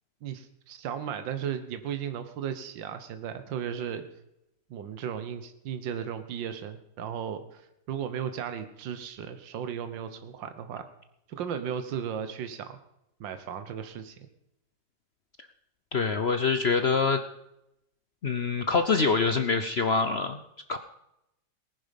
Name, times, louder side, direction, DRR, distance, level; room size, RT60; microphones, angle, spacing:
voice 1, 0.2-4.0 4.7-10.9 11.3-12.8 13.2-14.2, right 8 dB, 80° right, 10 dB, 1.7 m, -35 dB
voice 2, 15.9-17.2 18.2-20.4 20.7-20.8, left 4 dB, 55° left, 9 dB, 0.7 m, -25 dB
18.5 x 10.5 x 5.2 m, 0.83 s
omnidirectional pair, 2.0 m